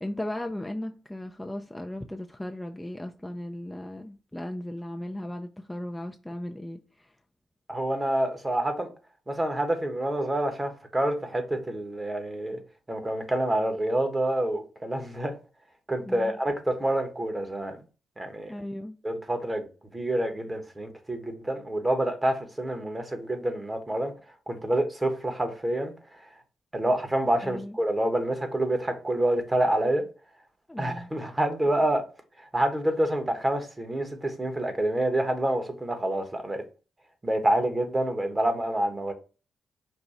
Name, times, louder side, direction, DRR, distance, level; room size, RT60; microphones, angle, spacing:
voice 1, 0.0-7.1 16.1-16.4 18.5-19.0 27.4-27.8 30.7-31.1, left 1 dB, 10° left, 0.5 m, -36 dB
voice 2, 7.7-8.9 9.3-12.6 12.9-15.4 15.9-17.8 18.2-18.5 19.0-19.7 19.9-24.1 24.5-26.2 26.7-30.0 30.8-32.0 32.4-36.6 37.2-39.1, right 1 dB, 20° right, 1.2 m, -27 dB
5.3 x 2.3 x 4.2 m
supercardioid pair, 55°, 0 cm